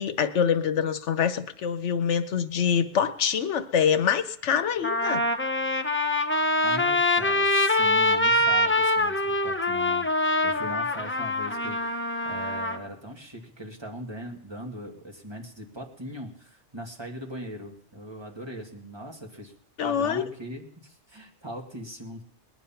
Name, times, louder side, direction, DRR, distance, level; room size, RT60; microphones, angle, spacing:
voice 1, 0.0-5.2 19.8-20.2, left 7 dB, 85° left, 11 dB, 1.2 m, -25 dB
Trumpet, 4.1-4.2 4.8-12.8, left 1 dB, 15° left, 0.7 m, -24 dB
voice 2, 6.6-19.5 19.8-22.2, equal, 20° right, 1 dB, 2.2 m, -40 dB
20.0 x 9.5 x 5.8 m, 0.65 s
omnidirectional pair, 1.2 m